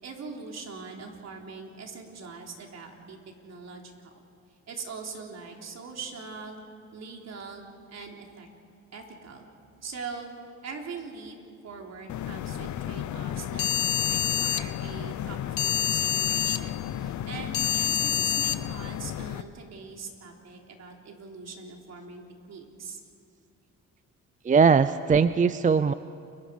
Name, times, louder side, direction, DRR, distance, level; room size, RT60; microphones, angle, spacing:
voice 1, 0.0-3.2 3.4-4.1 4.7-6.6 6.9-7.6 7.9-8.5 8.9-9.5 9.8-10.3 10.6-11.4 11.6-13.7 14.0-23.0, right 5 dB, 60° right, 1 dB, 3.7 m, -42 dB
sound 1, 12.1-19.4, left 10 dB, 70° left, 0.9 m, -28 dB
voice 2, 24.4-25.9, right 5 dB, 25° right, 13 dB, 0.5 m, -20 dB
29.5 x 23.0 x 5.3 m, 2.5 s
cardioid pair, 90°, 30 cm